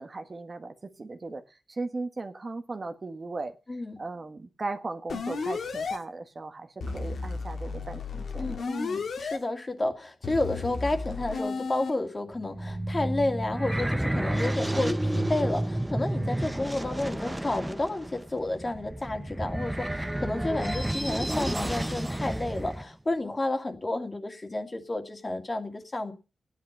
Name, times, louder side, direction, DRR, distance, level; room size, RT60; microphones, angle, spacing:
voice 1, 0.0-1.4 1.7-3.5 4.0-8.6, right 3 dB, 40° right, 1.4 m, -37 dB
voice 2, 3.7-4.0 8.4-26.1, left 2 dB, 30° left, 2.3 m, -31 dB
sound 1, 5.1-6.0 6.8-9.4 10.2-11.9, left 4 dB, 85° left, 2.1 m, -33 dB
sound 2, 12.3-22.8, right 1 dB, 10° right, 0.9 m, -31 dB
14.5 x 10.5 x 5.4 m
cardioid pair, 75°, 0 cm